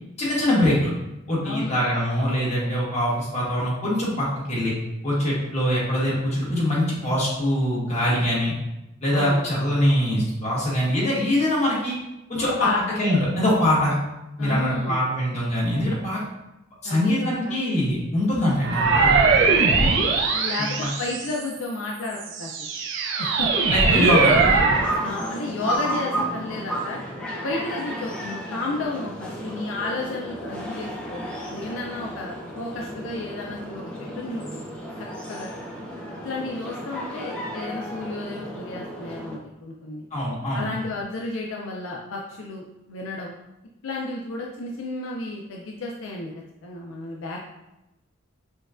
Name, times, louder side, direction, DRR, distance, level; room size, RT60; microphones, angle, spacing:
voice 1, 0.2-0.9 1.3-4.7 5.0-8.5 9.0-11.9 12.3-13.9 14.4-16.2 16.8-19.2 20.8-20.9 23.7-24.3 40.1-40.7, left 1 dB, 35° left, -6 dB, 1.3 m, -23 dB
voice 2, 1.4-1.8 9.1-9.4 12.6-12.8 14.4-15.0 16.8-17.6 19.5-19.9 20.3-22.7 23.2-23.5 23.9-24.4 25.0-27.0 27.4-34.5 35.3-35.5 36.2-40.0 40.5-43.3 43.8-47.5, left 2 dB, 75° left, -1 dB, 0.4 m, -32 dB
sound 1, 18.6-21.5 22.1-25.0, right 4 dB, 65° right, 0.5 m, -20 dB
sound 2, 24.0-39.4, right 1 dB, 5° left, 0.5 m, -33 dB
6.1 x 2.2 x 2.4 m, 0.94 s
head